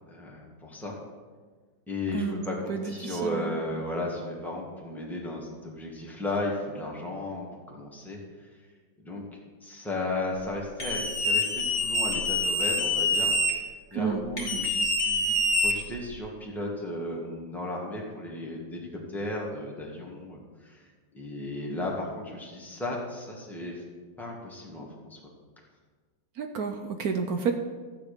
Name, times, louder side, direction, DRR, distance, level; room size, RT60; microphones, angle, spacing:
voice 1, 0.1-0.9 1.9-8.7 9.0-9.2 9.6-13.4 13.9-20.9 21.1-23.8 24.2-25.2, left 1 dB, ahead, -2 dB, 2.0 m, -35 dB
voice 2, 2.7-3.5 13.9-14.2 26.4-27.5, right 6 dB, 65° right, 5 dB, 1.1 m, -30 dB
sound 1, 10.8-13.5 14.4-16.2, left 1 dB, 40° left, 2.6 m, -26 dB
13.5 x 9.0 x 5.2 m, 1.4 s
omnidirectional pair, 2.0 m